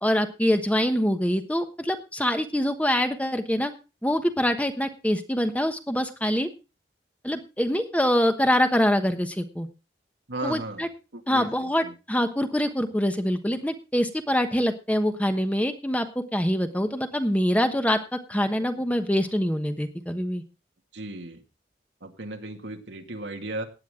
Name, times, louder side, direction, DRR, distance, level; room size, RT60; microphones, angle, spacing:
voice 1, 0.0-3.7 4.0-6.5 7.2-9.7 10.4-10.9 11.3-20.4, equal, 10° left, 7 dB, 1.1 m, -25 dB
voice 2, 10.3-11.9 20.9-21.4 22.0-23.7, right 2 dB, 90° right, 4 dB, 2.1 m, -36 dB
17.0 x 9.4 x 3.7 m, 0.30 s
head